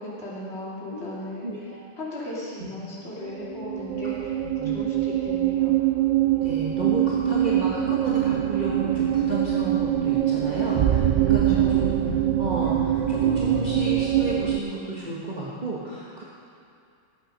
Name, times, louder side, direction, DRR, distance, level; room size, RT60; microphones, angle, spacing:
voice 1, 0.0-1.5 2.0-5.7 11.6-11.9, left 1 dB, 55° left, -6 dB, 2.9 m, -36 dB
voice 2, 1.4-1.8 2.6-2.7 4.4-4.9 6.4-12.0 12.4-16.2, right 2 dB, 35° right, -7 dB, 1.7 m, -32 dB
sound 1, 3.3-14.6, right 12 dB, 80° right, 0.4 m, -23 dB
sound 2, 9.6-14.7, right 1 dB, 5° right, 2.2 m, -48 dB
18.5 x 8.6 x 5.3 m, 2.5 s
omnidirectional pair, 1.4 m